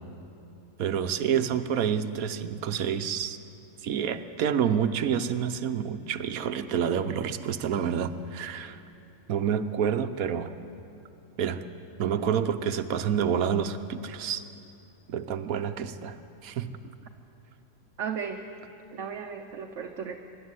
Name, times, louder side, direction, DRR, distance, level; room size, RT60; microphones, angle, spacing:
voice 1, 0.8-3.4 3.8-8.8 9.3-10.5 11.4-11.6 12.0-14.4 15.1-16.2 16.4-16.7, right 8 dB, 80° right, 10 dB, 1.3 m, -28 dB
voice 2, 18.0-18.4 18.9-20.2, right 7 dB, 60° right, 4 dB, 1.2 m, -35 dB
24.5 x 12.5 x 9.7 m, 2.7 s
omnidirectional pair, 1.5 m